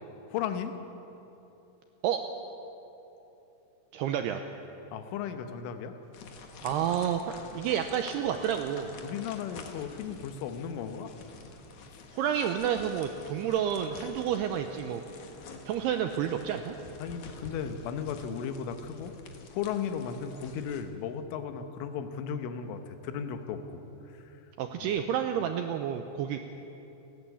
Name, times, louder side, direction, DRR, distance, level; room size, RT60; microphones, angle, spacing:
voice 1, 0.3-0.7 4.9-5.9 9.0-11.1 11.9-12.0 17.0-19.1 19.5-23.8 24.1-24.3 24.8-24.9, left 7 dB, 85° left, 8 dB, 3.6 m, -35 dB
voice 2, 3.9-4.4 6.6-7.2 7.5-8.9 12.1-15.0 15.7-16.8 24.6-26.4, right 9 dB, 85° right, 6 dB, 2.3 m, -30 dB
sound 1, 6.1-20.8, left 4 dB, 65° left, 2.0 m, -49 dB
30.0 x 11.5 x 8.4 m, 3.0 s
omnidirectional pair, 5.5 m